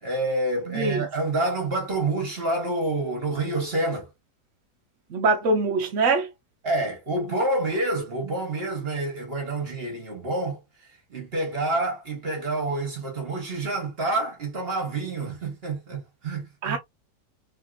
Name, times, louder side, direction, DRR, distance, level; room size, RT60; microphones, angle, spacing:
voice 1, 0.0-4.1 6.6-10.6 11.1-16.8, right 2 dB, 40° right, 1.3 m, -28 dB
voice 2, 0.7-1.1 5.1-6.3 16.6-16.8, right 3 dB, 65° right, 0.8 m, -23 dB
3.3 x 2.8 x 2.4 m
omnidirectional pair, 1.8 m